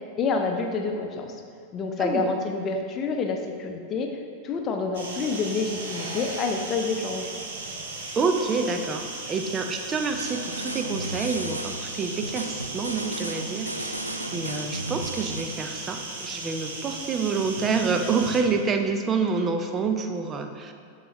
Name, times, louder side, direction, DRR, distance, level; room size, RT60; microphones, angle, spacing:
voice 1, 0.2-1.4 1.7-4.1 4.4-7.3, left 4 dB, 30° left, 3 dB, 0.7 m, -28 dB
voice 2, 2.0-2.3 8.2-20.7, right 4 dB, 25° right, 6 dB, 0.6 m, -27 dB
sound 1, 4.9-18.4, right 2 dB, 60° right, 1.0 m, -36 dB
sound 2, 10.1-15.4, right 1 dB, 85° right, 0.4 m, -35 dB
11.5 x 4.0 x 3.1 m, 2.3 s
figure-of-eight pair, 90°, 0 cm